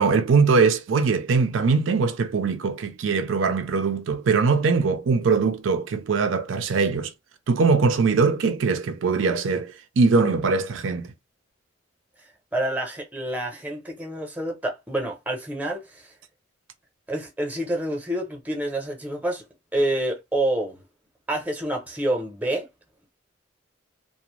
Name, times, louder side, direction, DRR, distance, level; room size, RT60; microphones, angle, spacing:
voice 1, 0.0-7.1 7.5-11.1, right 4 dB, 85° right, 0.4 m, -21 dB
voice 2, 12.2-16.1 17.1-19.4 19.7-20.8 21.3-22.7, right 1 dB, 10° right, 0.7 m, -28 dB
2.5 x 2.1 x 3.0 m
head